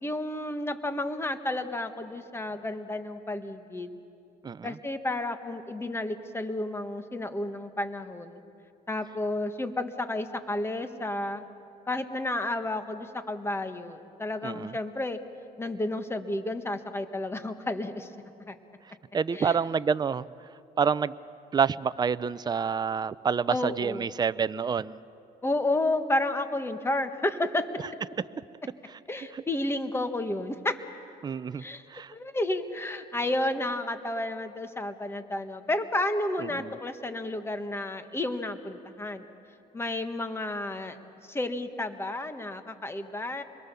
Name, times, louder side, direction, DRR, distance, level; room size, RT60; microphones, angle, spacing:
voice 1, 0.0-3.9 4.6-8.4 8.9-11.4 11.9-15.2 15.6-18.1 18.5-18.6 19.3-19.6 23.5-24.0 25.4-27.7 29.1-30.8 31.5-31.8 32.1-39.3 39.7-41.0 41.3-43.4, left 1 dB, 15° left, 8 dB, 1.5 m, -31 dB
voice 2, 4.4-4.8 14.4-14.7 19.1-20.3 20.8-21.1 21.5-25.0 29.3-29.4 31.2-31.6 31.9-32.1 36.4-36.7, right 6 dB, 25° right, 16 dB, 0.5 m, -28 dB
26.5 x 22.0 x 7.0 m, 2.6 s
cardioid pair, 110°, 17 cm